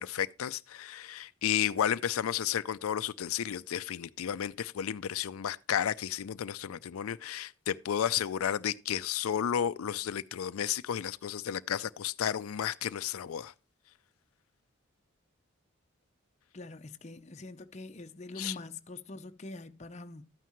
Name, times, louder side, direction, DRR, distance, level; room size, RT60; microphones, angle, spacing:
voice 1, 0.0-13.5 18.4-18.5, left 9 dB, 90° left, 0.4 m, -32 dB
voice 2, 16.5-20.2, left 2 dB, 35° left, 0.6 m, -44 dB
12.5 x 9.2 x 3.0 m
head